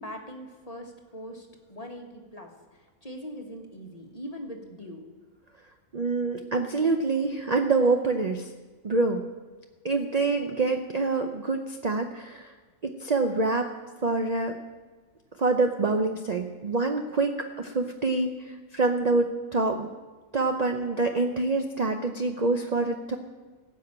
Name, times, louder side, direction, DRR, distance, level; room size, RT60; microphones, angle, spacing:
voice 1, 0.0-5.0, equal, 25° left, 2 dB, 1.5 m, -41 dB
voice 2, 5.9-8.5 8.8-9.2 9.8-12.5 12.8-13.7 14.0-14.6 15.4-19.9 20.3-23.2, right 3 dB, 45° right, 5 dB, 0.5 m, -26 dB
16.5 x 6.5 x 8.7 m, 1.4 s
omnidirectional pair, 1.7 m